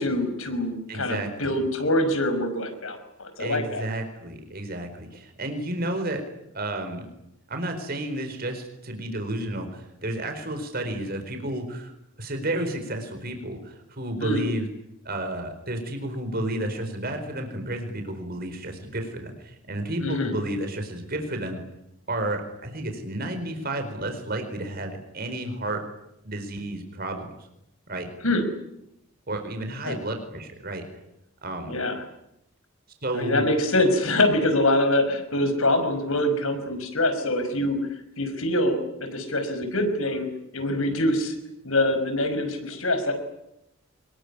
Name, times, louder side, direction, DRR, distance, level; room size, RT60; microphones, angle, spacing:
voice 1, 0.0-3.8 14.2-14.4 20.0-20.3 28.2-28.4 29.8-30.0 31.7-32.0 33.1-37.8 38.2-40.3 40.5-41.3 41.6-43.1, left 1 dB, 75° left, 8 dB, 5.7 m, -24 dB
voice 2, 0.9-1.5 3.4-6.2 6.5-7.1 7.5-11.9 12.2-14.7 15.0-21.6 22.1-25.8 26.2-27.3 27.9-28.1 29.3-30.8 31.4-31.7 33.0-33.4, right 1 dB, 45° right, 6 dB, 4.6 m, -31 dB
25.0 x 21.5 x 10.0 m, 0.83 s
head